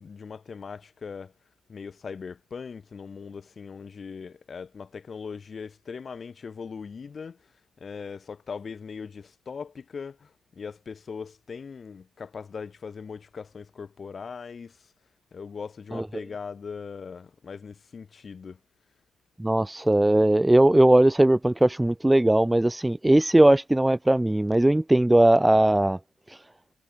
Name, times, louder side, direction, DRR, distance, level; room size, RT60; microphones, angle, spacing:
voice 1, 0.0-1.3 1.7-7.5 7.8-14.9 15.3-18.6, left 5 dB, 40° left, 7.3 m, -40 dB
voice 2, 19.4-26.0, right 1 dB, 10° right, 0.8 m, -19 dB
cardioid pair, 90°, 0 cm